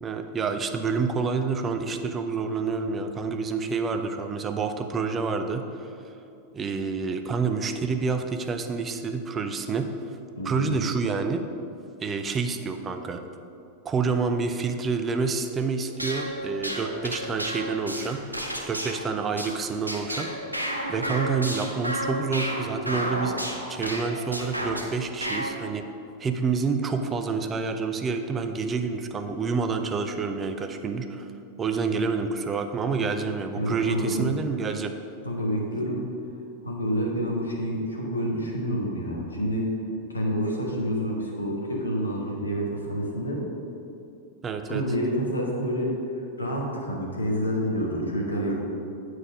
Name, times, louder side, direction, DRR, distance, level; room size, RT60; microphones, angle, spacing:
voice 1, 0.0-5.9 6.5-9.9 10.4-11.4 12.0-13.2 13.8-18.2 18.7-20.3 20.9-23.4 23.7-25.8 26.2-31.3 31.6-35.0 44.4-44.8, right 4 dB, 20° right, 6 dB, 0.5 m, -28 dB
voice 2, 10.3-10.8 33.5-34.4 35.2-36.0 36.6-39.7 40.1-43.4 44.7-45.9 46.4-48.5, equal, 75° left, -1 dB, 1.4 m, -28 dB
sound 1, 15.9-24.9 25.2-25.5, equal, 85° right, 0.8 m, -32 dB
8.6 x 4.8 x 5.1 m, 2.6 s
figure-of-eight pair, 90°, 0 cm